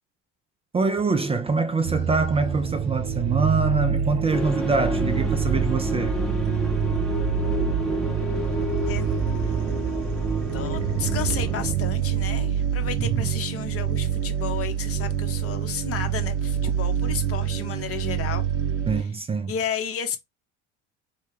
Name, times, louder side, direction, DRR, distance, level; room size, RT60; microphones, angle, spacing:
voice 1, 0.7-6.2 13.0-13.3 18.9-19.5, right 4 dB, 15° right, 0.4 m, -24 dB
sound 1, 1.8-19.0, right 8 dB, 75° right, 0.5 m, -27 dB
sound 2, 4.3-11.7, right 1 dB, ahead, 0.8 m, -28 dB
voice 2, 10.5-18.4 18.9-19.1 19.5-20.2, left 8 dB, 40° left, 0.8 m, -32 dB
3.2 x 2.2 x 3.1 m
hypercardioid pair, 70°, 36 cm